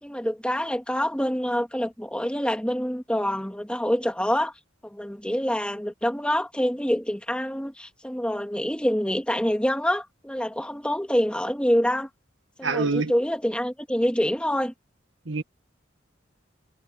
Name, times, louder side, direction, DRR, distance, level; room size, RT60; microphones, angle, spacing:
voice 1, 0.0-4.5 4.8-12.1 12.6-14.7, equal, 5° left, 2.3 m, -26 dB
voice 2, 12.6-13.1 15.3-15.4, right 4 dB, 80° right, 2.0 m, -25 dB
head